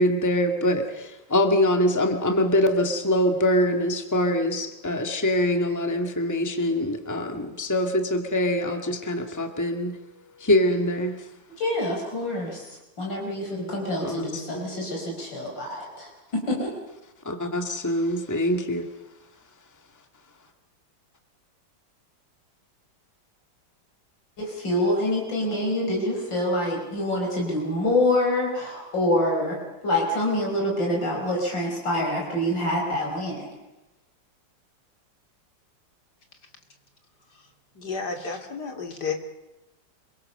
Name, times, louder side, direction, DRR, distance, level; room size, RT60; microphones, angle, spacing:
voice 1, 0.0-10.0 10.4-11.2 12.3-12.4 14.0-14.6 17.2-18.9, left 1 dB, 10° left, 5 dB, 2.0 m, -24 dB
voice 2, 11.6-12.7 13.0-16.7 24.4-33.5, left 1 dB, 80° left, -1 dB, 5.6 m, -26 dB
voice 3, 37.7-39.1, left 5 dB, 60° left, 4 dB, 3.2 m, -31 dB
27.5 x 23.0 x 6.7 m, 1.0 s
omnidirectional pair, 2.0 m